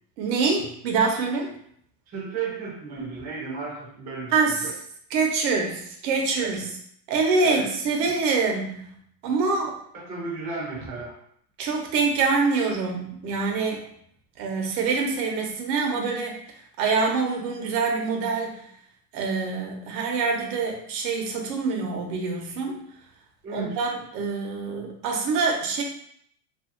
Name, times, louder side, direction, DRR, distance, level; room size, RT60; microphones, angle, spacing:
voice 1, 0.2-1.5 4.3-4.7 5.1-6.7 7.1-9.0 9.2-9.7 11.6-13.8 14.4-16.4 16.8-18.6 19.1-22.8 23.5-25.8, right 4 dB, 85° right, 2 dB, 0.9 m, -25 dB
voice 2, 2.1-4.3 4.6-4.7 7.4-7.7 9.9-11.2 23.4-23.8, right 4 dB, 20° right, -4 dB, 0.4 m, -33 dB
2.7 x 2.6 x 2.5 m, 0.67 s
supercardioid pair, 160°, 49 cm